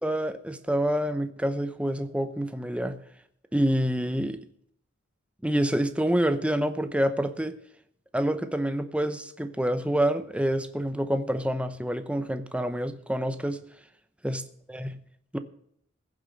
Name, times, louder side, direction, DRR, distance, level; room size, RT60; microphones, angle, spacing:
voice 1, 0.0-3.0 3.5-4.4 5.4-7.5 8.1-13.6 14.2-14.4 14.7-15.0 15.3-15.4, right 1 dB, 5° right, 0.8 m, -27 dB
16.0 x 7.4 x 6.5 m
head